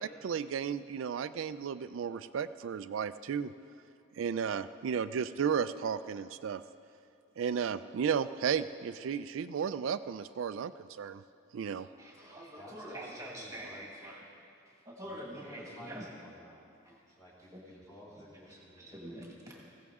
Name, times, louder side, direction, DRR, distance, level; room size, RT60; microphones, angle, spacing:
voice 1, 0.2-3.5 4.1-6.6 7.4-11.2 11.5-11.9, right 7 dB, 75° right, 12 dB, 0.3 m, -34 dB
voice 2, 12.0-14.2 14.8-16.1 16.8-17.0 17.5-17.6 18.6-19.6, right 1 dB, 15° right, -2 dB, 1.7 m, -45 dB
voice 3, 12.6-13.8 15.0-16.6 17.2-19.2 19.5-19.6, left 1 dB, 15° left, -6 dB, 3.6 m, -53 dB
20.5 x 15.5 x 3.6 m, 2.5 s
head